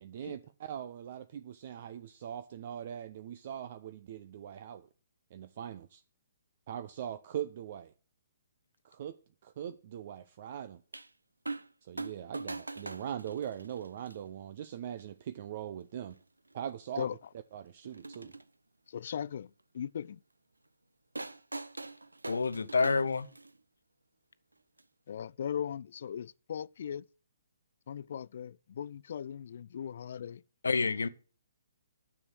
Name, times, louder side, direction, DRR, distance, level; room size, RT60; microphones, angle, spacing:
voice 1, 0.0-4.9 5.3-6.0 6.7-7.9 8.8-9.1 9.4-10.8 11.8-16.2 16.5-17.1 17.5-18.3, right 9 dB, 45° right, 0.7 m, -41 dB
sound 1, 10.9-11.1 11.5-11.7 12.0-14.1 15.0-15.1 16.1-16.2 16.5-16.6 17.8-18.4 21.2-23.6 24.8-24.9, right 3 dB, 85° right, 0.7 m, -42 dB
voice 2, 18.9-20.2 25.1-27.0 27.9-30.4, left 8 dB, 50° left, 0.4 m, -38 dB
voice 3, 22.3-23.3 30.6-31.1, left 4 dB, 70° left, 1.0 m, -28 dB
9.9 x 7.0 x 6.2 m
figure-of-eight pair, 130°, 0 cm